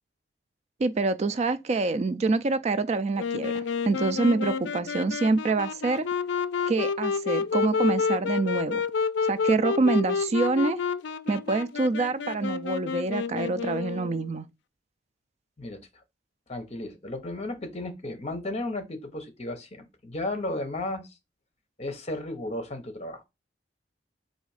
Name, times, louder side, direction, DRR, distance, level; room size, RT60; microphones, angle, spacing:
voice 1, 0.8-6.0 6.7-8.8 9.2-10.8 11.3-14.5, right 3 dB, 40° right, 0.4 m, -26 dB
Wind instrument woodwind instrument, 3.2-14.3, left 5 dB, 90° left, 0.4 m, -29 dB
voice 2, 16.5-21.1 21.8-23.2, left 2 dB, 35° left, 0.9 m, -34 dB
4.0 x 2.7 x 4.8 m
head